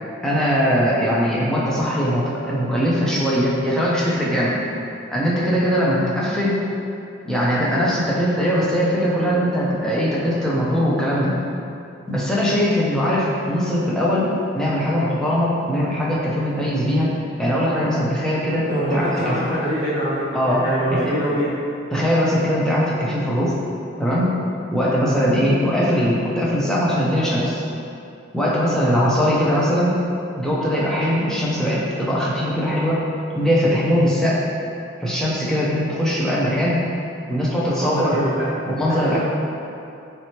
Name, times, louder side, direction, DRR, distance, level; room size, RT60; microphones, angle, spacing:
voice 1, 0.2-4.6 5.1-6.6 7.2-11.4 12.1-17.1 17.4-19.4 20.3-20.6 20.9-21.1 21.9-23.5 24.0-24.4 24.7-27.6 28.3-30.0 30.4-33.0 33.3-34.4 35.0-36.8 37.3-38.2 38.7-39.2, equal, 5° left, -7 dB, 0.4 m, -20 dB
voice 2, 18.7-21.6 37.6-38.5 38.9-39.2, equal, 45° right, -15 dB, 1.0 m, -24 dB
3.2 x 3.0 x 2.9 m, 2.6 s
head